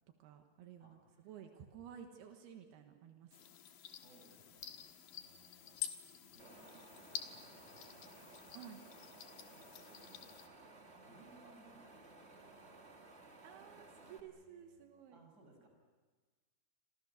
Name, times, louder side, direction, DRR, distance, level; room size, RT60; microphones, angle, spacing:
voice 1, 0.2-1.0 1.2-3.4 8.5-8.8 13.4-15.2, right 8 dB, 80° right, 5 dB, 3.4 m, -54 dB
voice 2, 0.8-1.3 3.9-8.3 9.5-13.0 14.0-14.8 15.1-15.7, right 2 dB, 25° right, 3 dB, 5.8 m, -65 dB
sound 1, 3.3-10.5, left 10 dB, 65° left, 2.9 m, -49 dB
Wind, 6.4-14.2, right 3 dB, 50° right, 0.7 m, -58 dB
29.0 x 25.0 x 6.5 m, 1.3 s
omnidirectional pair, 4.6 m